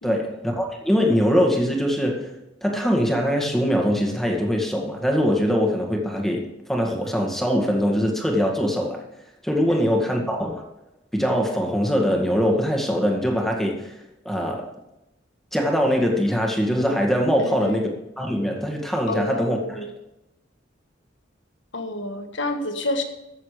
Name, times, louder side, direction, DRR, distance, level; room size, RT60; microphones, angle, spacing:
voice 1, 0.0-2.3 2.6-9.0 9.4-10.6 11.1-13.9 14.3-14.7 15.5-17.9 18.2-19.8, equal, ahead, 1 dB, 1.9 m, -22 dB
voice 2, 9.7-10.3 17.4-17.8 19.1-19.9 21.7-23.0, left 2 dB, 70° left, 6 dB, 1.5 m, -30 dB
15.0 x 7.1 x 5.0 m, 0.90 s
head